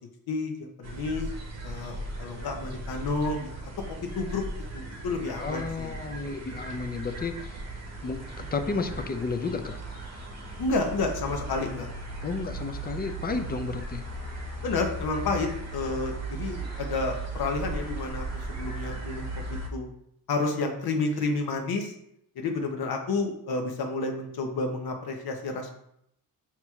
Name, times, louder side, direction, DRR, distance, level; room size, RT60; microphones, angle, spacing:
voice 1, 0.3-1.3 1.6-4.4 4.7-5.9 10.6-11.9 14.6-19.9 20.3-21.9 22.4-25.7, left 3 dB, 70° left, 3 dB, 0.8 m, -30 dB
sound 1, 0.8-19.7, right 2 dB, 45° right, 0.9 m, -37 dB
voice 2, 5.4-7.6 8.0-9.8 12.2-14.0, left 4 dB, 25° left, 7 dB, 0.4 m, -32 dB
5.9 x 2.9 x 2.3 m, 0.74 s
cardioid pair, 80°, 39 cm